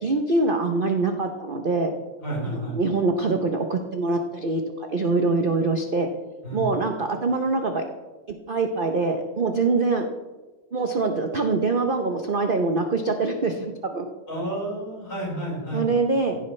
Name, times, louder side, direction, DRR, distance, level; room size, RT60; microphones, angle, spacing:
voice 1, 0.0-1.9 2.5-4.6 4.9-6.1 6.5-7.8 8.5-10.1 10.7-14.1 15.7-16.4, right 3 dB, 60° right, 4 dB, 0.5 m, -24 dB
voice 2, 2.2-2.8 6.4-6.7 14.3-15.9, right 1 dB, 55° left, -4 dB, 5.2 m, -30 dB
16.0 x 11.0 x 3.2 m, 1.2 s
omnidirectional pair, 2.1 m